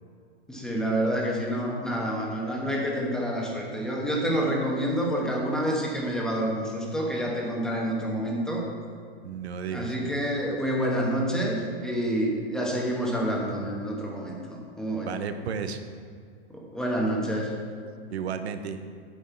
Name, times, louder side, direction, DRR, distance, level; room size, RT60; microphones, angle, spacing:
voice 1, 0.5-8.7 9.7-15.1 16.5-17.5, equal, ahead, -2 dB, 1.1 m, -28 dB
voice 2, 9.2-9.9 15.0-15.8 18.1-18.8, right 7 dB, 85° right, 8 dB, 1.0 m, -33 dB
9.1 x 7.6 x 4.5 m, 2.2 s
hypercardioid pair, 155°, 32 cm